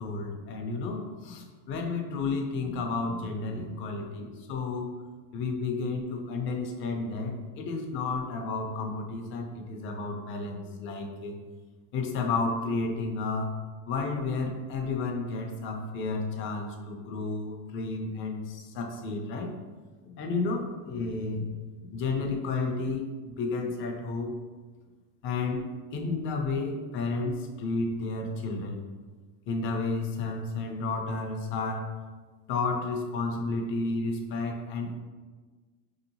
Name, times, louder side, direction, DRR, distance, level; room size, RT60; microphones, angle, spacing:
voice 1, 0.0-5.0 5.3-11.4 11.9-13.6 13.9-19.6 20.0-24.4 25.2-28.8 29.5-32.0 32.5-35.0, left 3 dB, 30° left, 3 dB, 0.3 m, -32 dB
4.3 x 2.8 x 2.6 m, 1.4 s
supercardioid pair, 125°, 48 cm